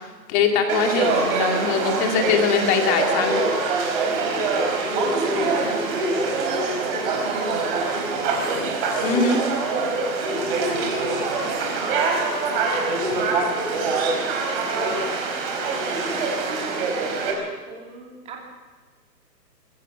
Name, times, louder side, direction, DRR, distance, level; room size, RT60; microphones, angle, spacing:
voice 1, 0.3-3.4 5.5-5.9 9.0-9.4, left 5 dB, 20° left, 3 dB, 2.4 m, -22 dB
Conversation / Crowd, 0.7-17.3, right 3 dB, 35° right, 4.8 m, -24 dB
voice 2, 4.2-4.9 5.5-5.7 6.1-8.5 9.7-10.4 11.3-15.0 15.7-18.4, right 5 dB, 10° right, 0 dB, 3.0 m, -41 dB
25.0 x 15.0 x 7.3 m, 1.4 s
hypercardioid pair, 155°, 50 cm